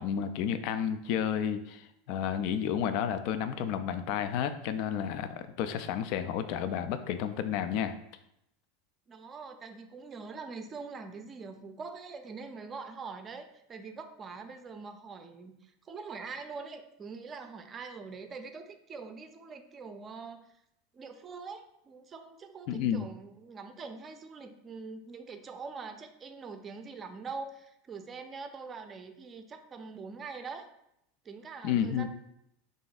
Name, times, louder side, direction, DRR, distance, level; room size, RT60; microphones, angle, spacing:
voice 1, 0.0-7.9 22.7-23.1 31.6-32.1, left 8 dB, 60° left, 10 dB, 0.3 m, -31 dB
voice 2, 9.1-20.6 20.9-30.7 31.2-32.1, right 4 dB, 30° right, 7 dB, 0.5 m, -44 dB
3.3 x 2.5 x 3.9 m, 0.79 s
hypercardioid pair, 95°, 0 cm